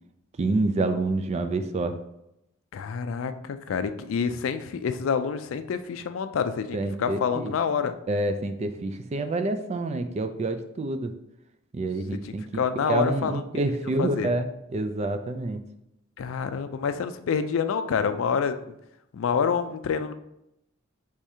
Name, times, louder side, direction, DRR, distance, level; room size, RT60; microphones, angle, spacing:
voice 1, 0.4-2.0 6.7-7.5 8.1-11.1 11.7-15.6, right 2 dB, 30° right, 8 dB, 0.3 m, -28 dB
voice 2, 2.7-7.9 12.2-13.4 13.7-14.3 16.2-18.7 19.1-20.1, left 6 dB, 70° left, 10 dB, 0.4 m, -27 dB
4.8 x 3.4 x 2.7 m, 0.84 s
head